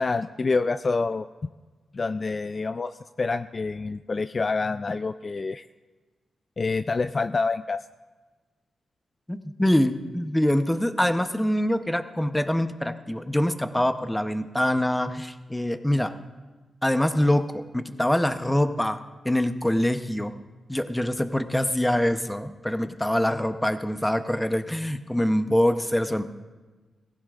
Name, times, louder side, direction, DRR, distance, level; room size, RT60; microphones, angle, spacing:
voice 1, 0.0-1.5 1.9-5.7 6.6-7.8, left 4 dB, 40° left, 11 dB, 0.3 m, -27 dB
voice 2, 9.3-16.1 16.8-20.4 20.7-26.3, left 1 dB, 10° left, 9 dB, 0.7 m, -24 dB
18.5 x 16.5 x 2.5 m, 1.3 s
cardioid pair, 90°, 0 cm